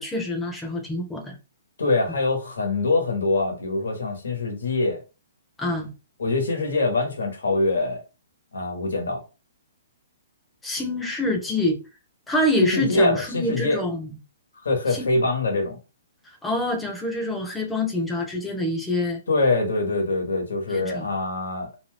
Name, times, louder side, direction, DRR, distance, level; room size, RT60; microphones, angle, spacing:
voice 1, 0.0-1.4 5.6-5.9 10.6-11.8 12.3-14.1 14.9-15.2 16.4-19.2 20.7-21.1, left 1 dB, 5° left, 0.7 m, -26 dB
voice 2, 1.8-5.0 6.2-8.0 8.5-9.2 12.7-13.8 14.6-15.8 19.3-21.7, left 2 dB, 85° left, 1.1 m, -24 dB
2.7 x 2.2 x 3.3 m
hypercardioid pair, 150°, 0 cm